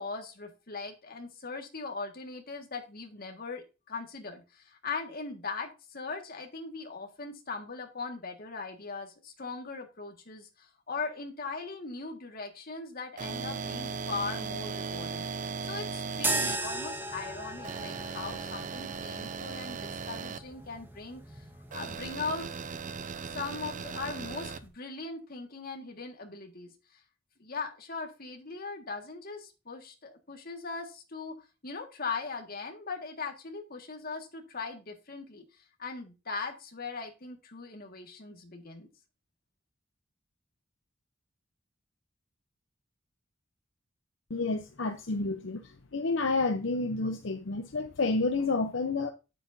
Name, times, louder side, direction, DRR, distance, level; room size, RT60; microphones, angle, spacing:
voice 1, 0.0-15.3 15.6-21.4 21.7-22.5 23.3-26.7 27.4-31.4 31.6-35.4 35.8-38.9, left 4 dB, 50° left, 1.8 m, -39 dB
sound 1, 13.2-16.6 17.6-20.4 21.7-24.6, right 5 dB, 40° right, 0.5 m, -37 dB
sound 2, 16.2-24.7, right 2 dB, 10° right, 1.2 m, -38 dB
voice 2, 44.3-49.1, left 3 dB, 70° left, 0.7 m, -30 dB
9.0 x 7.6 x 2.7 m
head